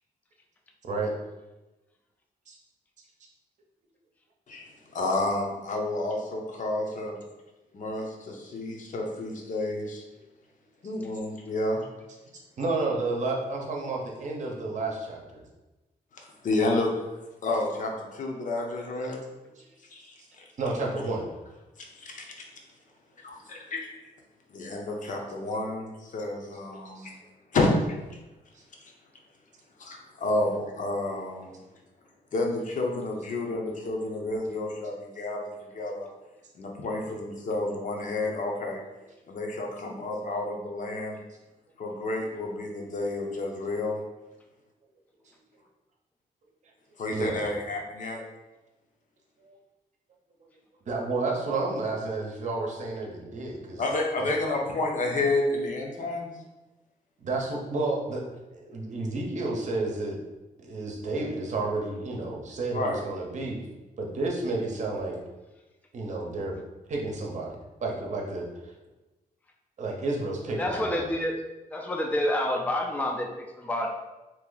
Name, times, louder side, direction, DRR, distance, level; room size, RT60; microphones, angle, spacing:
voice 1, 4.9-7.2 7.7-10.0 10.8-11.9 16.1-17.0 17.4-19.2 19.9-20.5 21.8-22.5 23.2-23.9 24.5-27.1 27.5-28.0 28.8-28.9 29.8-31.6 32.3-36.1 36.5-38.8 39.3-41.2 41.8-44.0 47.0-48.2 53.8-56.4 62.7-63.0, left 2 dB, 55° left, 1 dB, 0.7 m, -30 dB
voice 2, 12.6-15.4 20.6-21.3 26.9-27.1 28.5-28.6 47.1-47.5 49.4-49.6 50.9-53.8 54.2-54.3 57.2-58.2 58.5-60.2 60.6-63.6 64.0-65.2 65.9-66.5 66.9-67.5 67.8-68.7 69.8-71.0, right 3 dB, 50° right, 0 dB, 0.7 m, -31 dB
voice 3, 70.6-71.3 71.7-73.9, left 1 dB, 10° left, 2 dB, 0.4 m, -28 dB
2.9 x 2.5 x 3.8 m, 1.1 s
cardioid pair, 95°, 15 cm